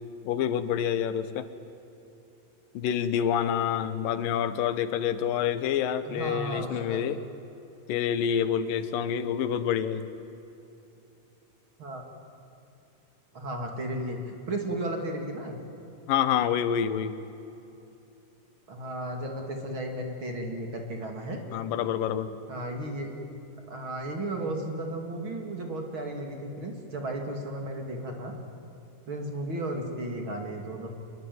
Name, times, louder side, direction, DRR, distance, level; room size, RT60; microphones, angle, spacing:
voice 1, 0.2-1.5 2.7-7.2 7.9-10.1 16.1-17.2 21.5-22.3, left 9 dB, 90° left, 12 dB, 2.8 m, -27 dB
voice 2, 6.0-7.0 11.8-12.0 13.3-15.6 18.7-21.4 22.5-23.2 23.7-28.3 29.1-30.9, right 1 dB, 40° right, 3 dB, 3.2 m, -34 dB
25.0 x 21.5 x 9.5 m, 2.9 s
omnidirectional pair, 3.8 m